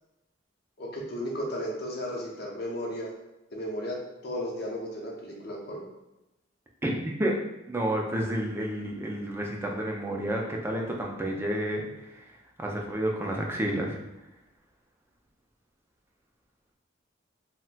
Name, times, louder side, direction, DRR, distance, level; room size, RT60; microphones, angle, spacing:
voice 1, 0.8-3.1 3.5-4.0 4.2-5.8, equal, 55° left, -1 dB, 0.7 m, -34 dB
voice 2, 6.8-7.4 7.7-12.1 12.6-14.0, right 1 dB, 15° right, 0 dB, 0.4 m, -30 dB
4.0 x 2.1 x 2.2 m, 0.98 s
head